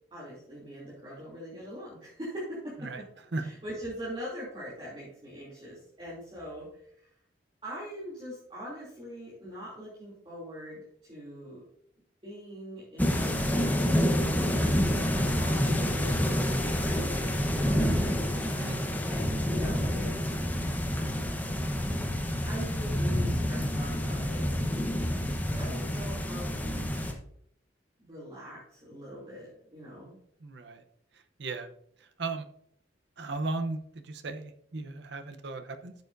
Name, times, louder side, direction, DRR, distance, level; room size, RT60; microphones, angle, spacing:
voice 1, 0.1-2.9 3.4-7.1 7.6-10.8 11.1-11.6 12.2-18.2 19.1-20.3 20.9-21.2 22.4-24.8 25.6-27.0 28.0-30.2, equal, 25° right, -8 dB, 2.9 m, -42 dB
sound 1, 13.0-27.1, equal, 10° left, 1.0 m, -28 dB
voice 2, 18.5-18.9 30.4-30.8 31.4-31.7 32.0-32.4 33.2-35.9, right 3 dB, 65° right, 8 dB, 0.8 m, -36 dB
13.0 x 6.9 x 2.6 m, 0.70 s
head